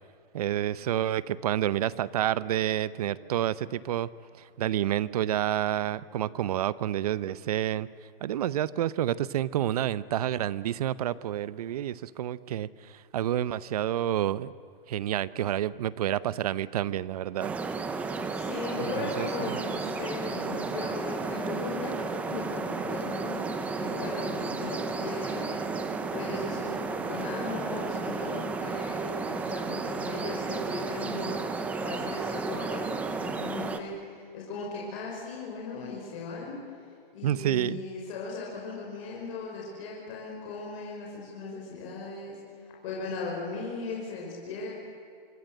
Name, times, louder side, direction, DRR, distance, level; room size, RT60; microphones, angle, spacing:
voice 1, 0.3-4.1 4.4-7.9 8.2-14.5 14.9-17.5 18.8-19.6 37.2-37.8, right 12 dB, 40° right, 18 dB, 0.8 m, -29 dB
sound 1, 17.4-33.8, right 4 dB, 5° right, 0.6 m, -33 dB
voice 2, 18.3-31.4 31.8-36.5 37.1-42.4 42.8-44.7, left 3 dB, 35° left, -3 dB, 5.7 m, -37 dB
25.5 x 25.0 x 7.9 m, 2.3 s
hypercardioid pair, 165°, 29 cm